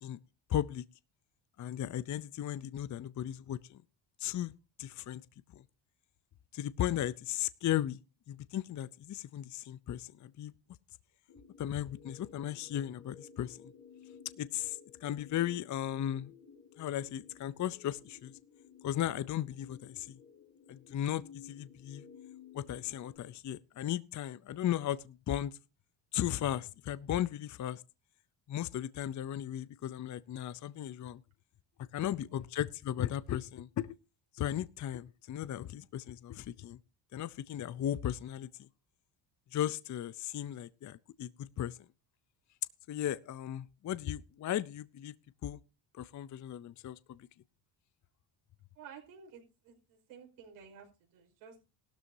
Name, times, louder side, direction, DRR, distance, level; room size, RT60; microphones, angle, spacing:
voice 1, 0.5-0.8 1.6-3.8 4.2-4.5 4.8-5.2 5.5-5.6 6.5-8.0 8.3-10.5 11.6-13.7 14.4-16.3 16.8-18.3 18.8-20.2 20.7-22.0 22.5-25.6 26.1-27.8 28.5-31.2 31.9-34.0 34.3-36.8 37.1-38.7 39.5-41.8 42.9-45.1 45.4-45.6 45.9-47.3, left 11 dB, 40° left, 0.6 m, -36 dB
sound 1, 11.3-23.2, left 7 dB, 65° left, 4.8 m, -56 dB
voice 2, 32.0-32.5 48.7-51.6, right 7 dB, 85° right, 5.2 m, -54 dB
17.0 x 12.5 x 2.7 m
cardioid pair, 90°, 47 cm